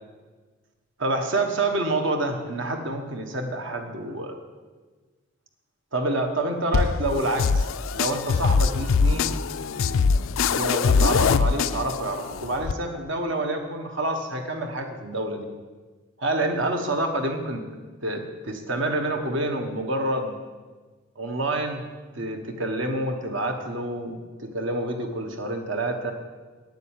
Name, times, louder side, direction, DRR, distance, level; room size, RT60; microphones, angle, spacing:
voice 1, 1.0-4.4 5.9-7.7 7.9-9.3 10.5-15.5 16.2-17.6 18.0-20.4 21.2-21.8 22.1-26.1, right 2 dB, 65° right, 4 dB, 1.4 m, -28 dB
sound 1, 6.7-12.7, left 5 dB, 70° left, 0.4 m, -23 dB
9.4 x 8.0 x 9.1 m, 1.4 s
head